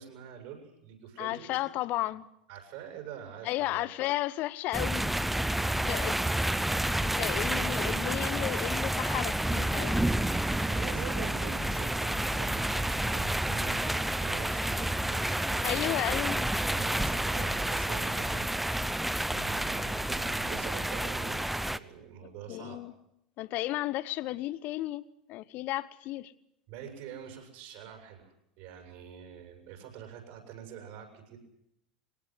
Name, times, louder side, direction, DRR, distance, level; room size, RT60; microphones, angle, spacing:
voice 1, 0.0-1.5 2.5-3.9 5.8-6.5 7.3-7.7 10.3-15.9 16.6-22.8 26.7-31.4, right 9 dB, 55° right, 7.4 m, -46 dB
voice 2, 1.2-2.3 3.4-5.1 5.9-6.1 7.0-10.0 15.6-16.5 22.5-22.9 23.4-26.3, left 16 dB, 45° left, 0.9 m, -33 dB
sound 1, 4.7-21.8, right 1 dB, 5° right, 0.9 m, -30 dB
23.0 x 18.5 x 7.9 m
figure-of-eight pair, 80°, 4 cm